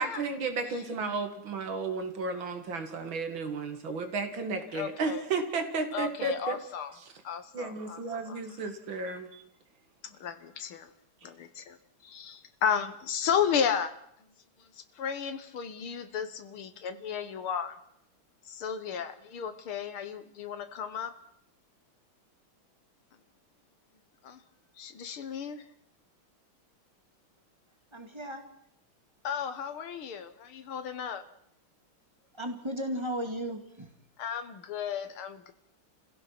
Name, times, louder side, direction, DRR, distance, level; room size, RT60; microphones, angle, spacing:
voice 1, 0.0-6.6 6.9-7.1 7.5-9.4, right 4 dB, 65° right, 7 dB, 2.8 m, -33 dB
voice 2, 4.7-5.3 5.9-6.9 7.2-8.4 10.0-10.9 11.2-11.8 12.0-13.9 14.6-17.8 18.5-21.1 24.2-24.4 24.8-25.7 29.2-31.2 34.2-35.5, left 7 dB, 75° left, 10 dB, 2.2 m, -34 dB
voice 3, 27.9-28.5 32.4-33.9, equal, 10° right, 5 dB, 2.3 m, -35 dB
29.5 x 16.5 x 6.0 m, 0.72 s
omnidirectional pair, 2.4 m